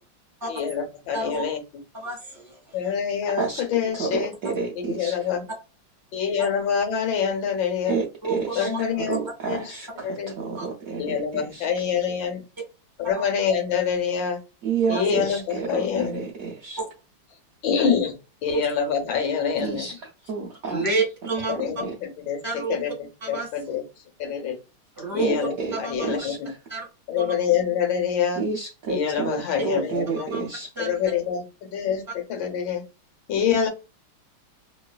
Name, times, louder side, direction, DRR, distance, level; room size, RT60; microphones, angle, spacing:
voice 1, 0.5-1.6 2.7-4.3 4.8-5.4 6.1-8.0 8.6-9.2 9.5-9.7 10.0-10.3 11.0-12.4 13.0-14.4 14.9-16.1 17.6-18.1 18.4-19.9 21.5-22.9 23.3-23.8 24.2-24.6 25.1-26.5 27.1-28.4 28.9-30.3 30.8-31.5 31.7-32.8 33.3-33.7, left 7 dB, 70° left, 1.4 m, -26 dB
voice 2, 1.9-2.8 4.4-4.5 8.2-8.8 10.6-10.7 13.0-13.2 14.9-15.0 16.8-16.9 20.7-21.6 22.4-22.8 23.2-23.7 25.0-25.3 25.7-26.1 26.7-26.9 27.2-27.3 30.3-30.4 30.8-30.9, right 3 dB, 10° right, 1.3 m, -29 dB
voice 3, 3.9-5.3 7.8-11.7 14.6-16.8 19.6-20.0 20.2-21.0 21.6-22.0 25.2-26.6 28.4-30.7, right 5 dB, 90° right, 0.7 m, -30 dB
3.0 x 3.0 x 2.3 m
omnidirectional pair, 2.3 m